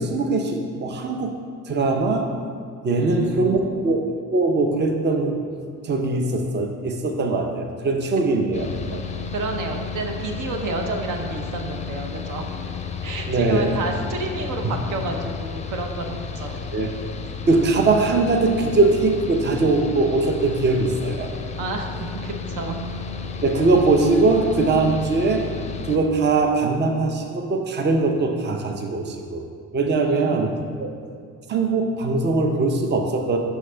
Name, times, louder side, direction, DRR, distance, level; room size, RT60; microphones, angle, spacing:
voice 1, 0.0-1.3 1.6-2.3 2.8-4.0 4.3-5.4 5.8-9.0 13.3-13.7 16.7-16.9 17.5-21.3 23.4-25.5 25.9-29.4 29.7-30.5 30.8-30.9 31.5-33.4, right 3 dB, 35° right, 4 dB, 0.6 m, -21 dB
voice 2, 3.0-3.8 9.0-12.5 13.0-16.6 21.6-21.9 22.2-22.8 30.1-30.7, right 3 dB, 70° right, 4 dB, 0.8 m, -30 dB
Mechanical fan, 8.5-26.0, left 5 dB, 20° left, 0.5 m, -32 dB
6.2 x 5.5 x 3.3 m, 2.1 s
cardioid pair, 85°, 32 cm